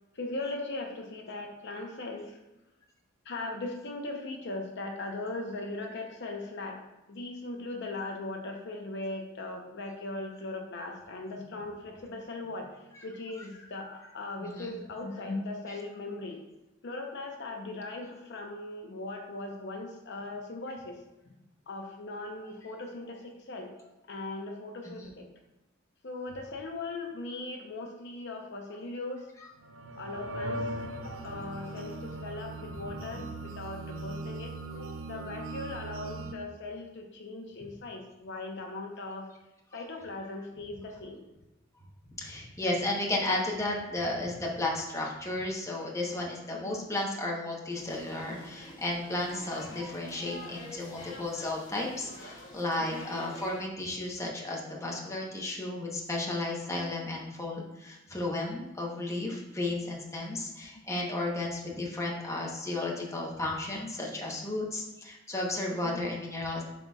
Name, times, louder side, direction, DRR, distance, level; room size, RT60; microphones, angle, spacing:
voice 1, 0.1-2.4 3.2-6.8 7.1-16.4 16.8-21.0 21.2-21.4 21.7-23.7 24.1-25.3 26.0-29.3 30.0-30.7 30.9-39.3 39.7-41.2 46.5-46.8 52.8-53.1 60.7-60.9 65.7-66.0, left 2 dB, 60° left, 2 dB, 0.7 m, -39 dB
voice 2, 14.4-14.7 25.0-25.1 42.2-66.6, left 2 dB, 15° left, -2 dB, 1.0 m, -33 dB
sound 1, 29.6-36.3, right 2 dB, 70° right, 0.6 m, -39 dB
sound 2, 47.7-53.6, equal, 85° left, 1.8 m, -47 dB
11.0 x 4.0 x 2.4 m, 0.96 s
head